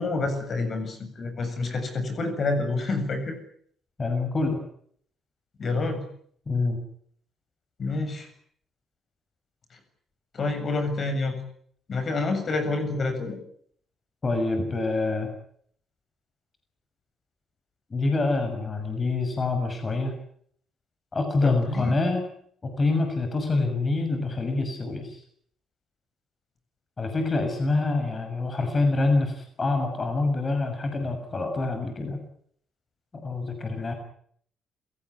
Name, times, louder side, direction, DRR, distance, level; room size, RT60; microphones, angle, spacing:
voice 1, 0.0-3.4 5.6-6.0 7.8-8.3 10.3-11.4 11.9-13.4 21.4-22.0, left 3 dB, 50° left, 8 dB, 7.5 m, -28 dB
voice 2, 4.0-4.6 6.5-6.8 14.2-15.3 17.9-20.1 21.1-22.2 22.8-25.2 27.0-32.2 33.1-33.9, left 3 dB, 30° left, 6 dB, 6.9 m, -26 dB
28.5 x 17.5 x 9.9 m, 0.64 s
cardioid pair, 90°, 0 cm